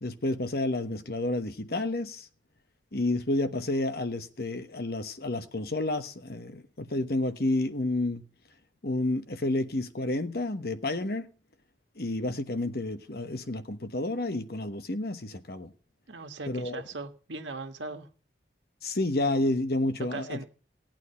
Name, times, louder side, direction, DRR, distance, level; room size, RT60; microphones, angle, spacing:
voice 1, 0.0-2.2 2.9-8.2 8.8-11.3 12.0-15.7 16.5-16.8 18.8-20.4, left 2 dB, 55° left, 1.1 m, -30 dB
voice 2, 16.1-18.1 20.1-20.4, right 3 dB, 80° right, 1.6 m, -39 dB
17.0 x 9.1 x 5.6 m
head